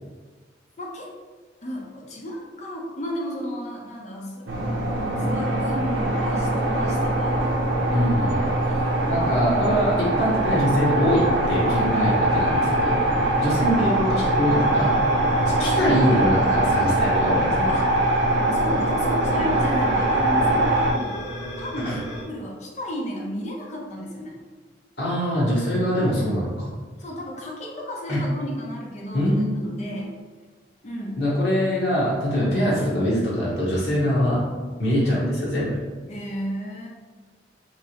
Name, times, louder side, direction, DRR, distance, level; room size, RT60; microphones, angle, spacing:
voice 1, 0.8-1.1 1.6-4.5 5.2-7.4 11.7-12.2 17.7-21.2 21.6-24.4 27.0-30.1 30.8-31.2 36.1-36.9, equal, 40° left, -1 dB, 0.6 m, -33 dB
sound 1, 4.5-20.9, right 1 dB, 85° right, 0.6 m, -22 dB
voice 2, 7.9-8.8 9.1-13.0 13.3-14.9 15.4-17.5 21.8-22.0 25.0-26.7 28.1-28.2 29.1-30.0 31.2-34.4 34.8-35.8, equal, 60° left, -7 dB, 1.0 m, -23 dB
sound 2, 13.4-22.2, equal, 85° left, 1.4 m, -37 dB
3.2 x 3.0 x 2.8 m, 1.4 s
head